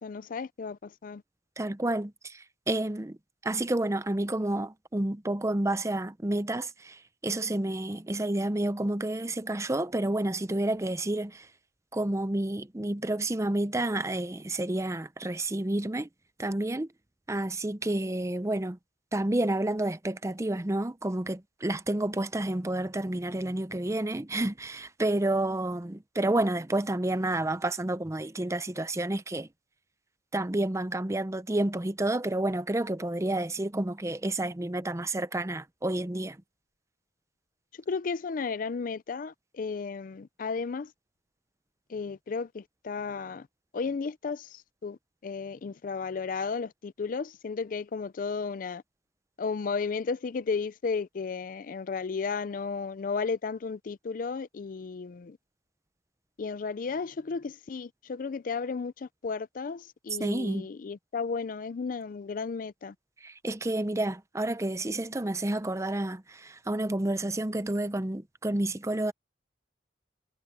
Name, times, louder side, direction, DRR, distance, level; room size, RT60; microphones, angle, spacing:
voice 1, 0.0-1.2 37.9-40.9 41.9-43.5 43.7-48.8 49.4-55.4 56.4-62.9, left 5 dB, 50° left, 0.4 m, -34 dB
voice 2, 1.6-3.2 3.4-11.5 11.9-16.1 16.4-16.9 17.3-18.8 19.1-29.5 30.3-36.4 60.2-60.7 63.2-69.1, right 1 dB, 15° right, 0.6 m, -30 dB
head